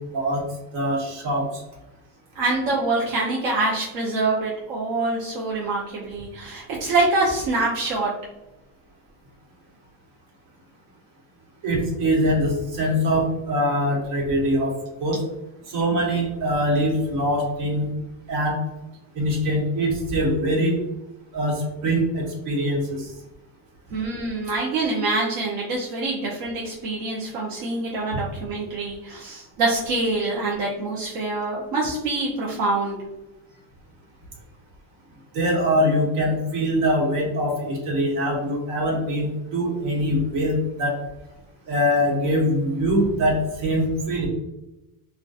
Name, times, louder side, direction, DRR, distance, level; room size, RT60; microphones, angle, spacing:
voice 1, 0.7-1.6 11.6-15.2 15.7-17.9 18.3-18.6 19.1-20.8 21.3-23.1 35.3-41.0 41.7-44.3, equal, 70° right, -2 dB, 1.1 m, -23 dB
voice 2, 2.4-8.1 23.9-33.0, right 2 dB, 55° right, -3 dB, 0.5 m, -25 dB
2.7 x 2.2 x 2.3 m, 0.99 s
cardioid pair, 175°, 39 cm